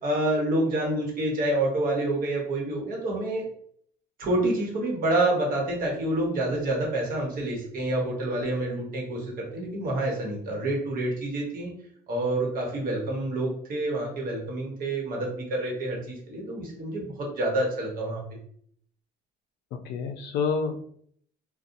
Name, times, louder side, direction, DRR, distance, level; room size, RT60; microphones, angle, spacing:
voice 1, 0.0-3.4 4.2-11.7 12.1-18.2, right 1 dB, 55° right, -1 dB, 1.1 m, -28 dB
voice 2, 19.7-20.8, left 5 dB, 80° left, 5 dB, 0.4 m, -29 dB
2.7 x 2.2 x 2.6 m, 0.63 s
cardioid pair, 110°, 17 cm